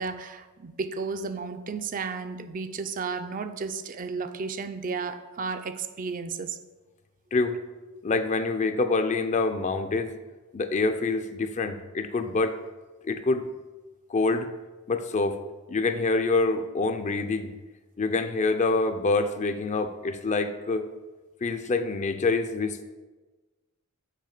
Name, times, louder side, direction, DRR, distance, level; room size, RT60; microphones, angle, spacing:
voice 1, 0.0-6.6, right 4 dB, 40° right, 9 dB, 0.4 m, -33 dB
voice 2, 8.0-10.2 10.5-12.6 13.0-13.5 14.1-14.5 14.9-15.4 15.7-17.5 18.0-20.9 21.4-22.8, left 3 dB, 35° left, 9 dB, 0.5 m, -26 dB
6.6 x 4.8 x 6.6 m, 1.2 s
head